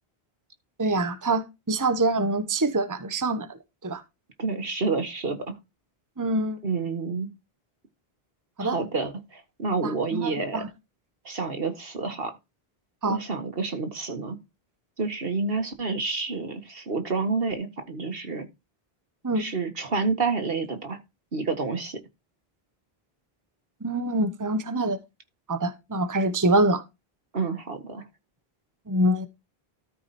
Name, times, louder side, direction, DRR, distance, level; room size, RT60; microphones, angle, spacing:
voice 1, 0.8-4.0 6.2-6.6 8.6-8.8 9.8-10.7 13.0-13.2 19.2-19.5 23.8-25.0 25.5-26.8 28.9-29.3, right 2 dB, 20° right, 1.0 m, -25 dB
voice 2, 4.4-5.6 6.6-7.3 8.6-10.6 11.3-12.3 13.1-14.4 15.0-18.5 19.4-21.0 21.3-22.0 27.3-28.0, right 4 dB, 65° right, 1.9 m, -29 dB
13.0 x 4.9 x 4.2 m
omnidirectional pair, 1.0 m